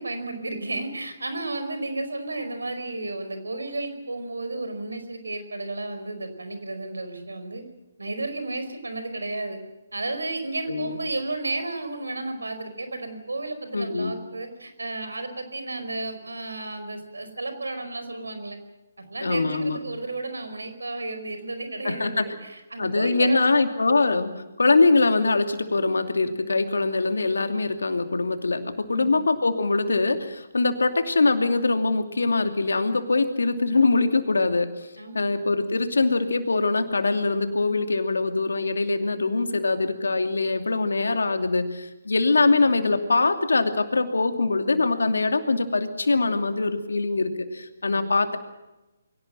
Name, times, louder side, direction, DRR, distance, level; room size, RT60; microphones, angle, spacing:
voice 1, 0.0-7.6 8.0-9.6 9.9-18.6 19.0-23.6 28.9-29.3 35.0-35.3 47.9-48.1, right 2 dB, 85° right, 8 dB, 4.8 m, -33 dB
voice 2, 13.7-14.1 19.2-19.8 21.8-22.3 22.8-34.9 35.1-48.4, left 3 dB, 80° left, 7 dB, 2.7 m, -23 dB
23.0 x 17.5 x 7.6 m, 1.0 s
figure-of-eight pair, 145°, 0 cm